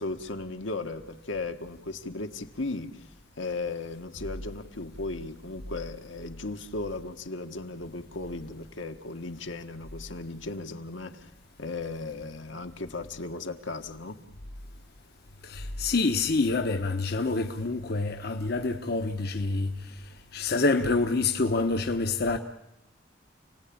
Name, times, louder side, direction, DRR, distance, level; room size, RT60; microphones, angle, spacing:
voice 1, 0.0-3.0 3.4-11.3 11.6-14.2, left 3 dB, 80° left, 1.6 m, -36 dB
voice 2, 15.4-19.9 20.3-22.4, left 3 dB, 55° left, 1.0 m, -27 dB
29.0 x 19.0 x 8.8 m
head